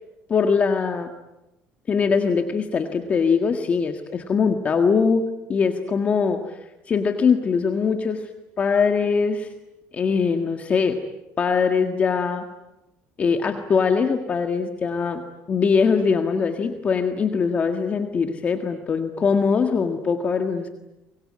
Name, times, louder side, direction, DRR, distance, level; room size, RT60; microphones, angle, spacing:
voice 1, 0.3-1.1 1.9-6.6 6.9-8.2 8.6-9.5 9.9-11.0 11.4-12.5 13.2-20.7, left 5 dB, 30° left, 6 dB, 1.7 m, -22 dB
25.5 x 23.0 x 9.8 m, 0.97 s
cardioid pair, 150°, 5 cm